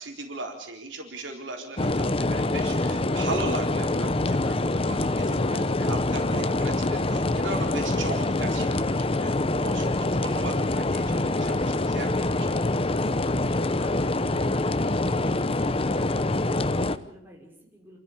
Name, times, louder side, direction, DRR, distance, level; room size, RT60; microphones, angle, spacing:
voice 1, 0.0-12.8, right 2 dB, 70° right, 2 dB, 4.1 m, -37 dB
sound 1, 1.8-17.0, left 2 dB, 30° left, 0.8 m, -25 dB
voice 2, 5.4-6.0 13.8-18.0, equal, 10° right, -2 dB, 5.7 m, -48 dB
28.0 x 14.0 x 8.7 m, 0.74 s
head